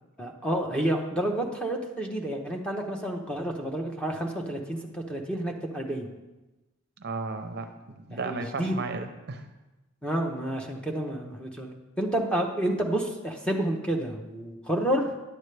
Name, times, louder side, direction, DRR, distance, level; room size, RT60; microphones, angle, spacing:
voice 1, 0.2-6.1 8.1-8.8 10.0-15.2, right 1 dB, 5° left, 1 dB, 0.8 m, -30 dB
voice 2, 7.0-7.7 8.0-9.5, right 3 dB, 45° right, 6 dB, 0.6 m, -34 dB
10.0 x 8.1 x 3.3 m, 1.1 s
head